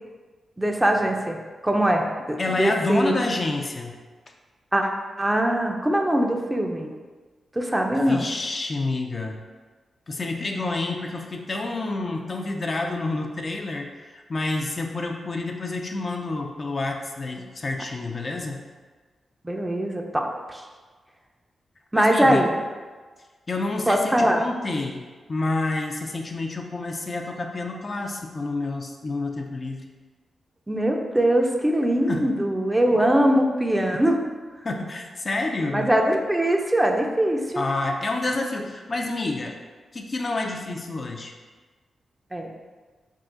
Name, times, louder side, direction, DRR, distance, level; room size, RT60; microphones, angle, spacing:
voice 1, 0.6-1.4 1.6-3.1 4.7-4.9 5.2-6.9 7.6-8.3 19.4-20.6 21.9-22.5 23.9-24.4 30.7-34.2 35.7-37.7 42.3-42.5, right 1 dB, 15° right, 2 dB, 0.5 m, -22 dB
voice 2, 2.4-4.0 8.1-9.4 10.1-18.6 21.9-22.5 23.5-29.9 32.1-32.3 33.9-34.0 34.6-35.9 37.6-39.6 39.9-41.3, left 2 dB, 45° left, 2 dB, 0.4 m, -28 dB
3.6 x 2.4 x 3.8 m, 1.4 s
cardioid pair, 55°, 0 cm